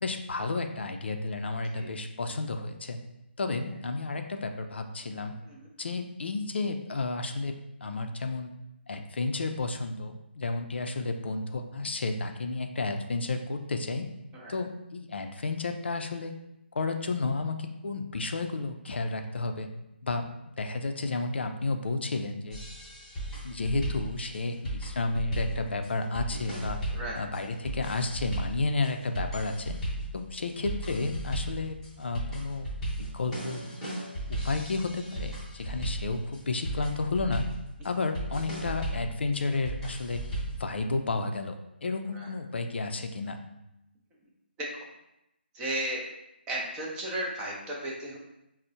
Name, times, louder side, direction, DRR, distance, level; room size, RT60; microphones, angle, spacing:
voice 1, 0.0-3.0 3.4-5.3 5.8-7.5 7.8-8.5 8.9-14.1 14.5-16.3 16.7-19.7 20.0-20.3 20.6-22.6 23.4-26.8 27.2-29.8 30.1-32.7 33.0-33.8 34.3-37.5 37.8-40.2 40.6-43.4, left 3 dB, 70° left, 6 dB, 0.4 m, -32 dB
sound 1, 22.5-40.6, right 1 dB, 5° left, 0.8 m, -36 dB
voice 2, 45.5-46.0 46.5-48.2, right 1 dB, 10° right, -3 dB, 0.5 m, -34 dB
4.3 x 2.0 x 2.6 m, 0.87 s
figure-of-eight pair, 155°, 6 cm